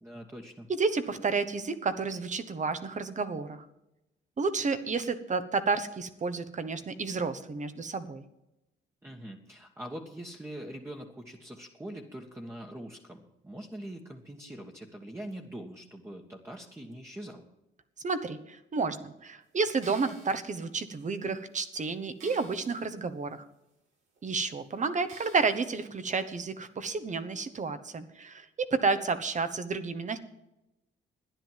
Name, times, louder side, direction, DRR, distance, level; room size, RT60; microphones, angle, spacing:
voice 1, 0.0-0.7 9.0-17.4, right 1 dB, 10° right, -1 dB, 1.6 m, -43 dB
voice 2, 0.7-3.6 4.4-8.2 18.0-23.4 24.2-30.2, right 4 dB, 40° right, 11 dB, 1.3 m, -31 dB
sound 1, 19.8-20.4 21.1-21.2 21.6-21.7 22.2-22.9 23.3-23.4 24.2-24.3 25.1-25.8 26.3-26.4, right 3 dB, 80° right, 6.4 m, -51 dB
12.5 x 10.5 x 7.6 m, 0.90 s
cardioid pair, 90°, 20 cm